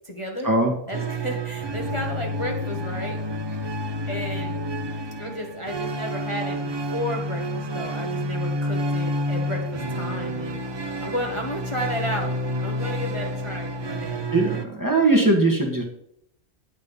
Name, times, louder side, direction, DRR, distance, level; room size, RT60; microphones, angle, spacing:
voice 1, 0.0-0.5 0.9-3.2 4.1-4.6 5.2-10.6 11.0-12.3 12.6-14.2, equal, 25° left, 0 dB, 1.2 m, -32 dB
string quartet, 0.9-14.7, equal, 30° right, 0.4 m, -29 dB
voice 2, 14.3-15.8, right 2 dB, 15° right, 1 dB, 1.4 m, -20 dB
8.9 x 5.2 x 5.4 m, 0.73 s
omnidirectional pair, 1.3 m